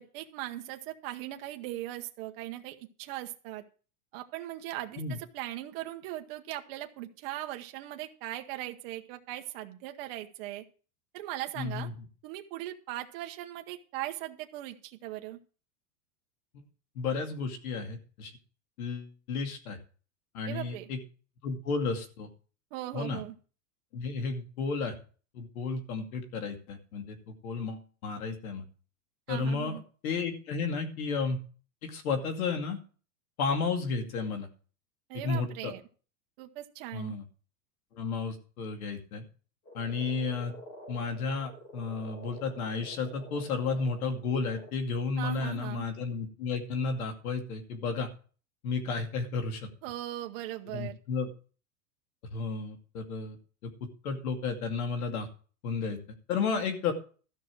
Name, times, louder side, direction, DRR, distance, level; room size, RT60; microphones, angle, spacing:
voice 1, 0.0-3.6 4.1-10.6 11.1-11.9 12.2-15.4 20.5-20.9 22.7-23.3 29.3-29.8 35.1-35.8 36.4-37.1 45.2-45.9 49.8-51.0, right 14 dB, 40° right, 4 dB, 1.1 m, -39 dB
voice 2, 11.6-11.9 17.0-18.3 18.8-19.8 20.3-21.0 21.4-22.3 22.9-23.2 23.9-24.9 25.3-28.6 29.3-31.4 31.8-32.8 33.4-34.5 35.2-35.7 36.9-37.2 37.9-39.2 39.7-40.5 40.9-48.1 48.6-49.7 50.7-51.3 52.3-53.4 53.6-53.7 54.0-55.3 55.6-56.0 56.3-56.9, left 4 dB, 70° left, 5 dB, 2.5 m, -32 dB
Frog, 39.7-44.7, equal, 25° left, 2.4 m, -49 dB
13.5 x 6.0 x 6.3 m, 0.38 s
supercardioid pair, 165°, 46 cm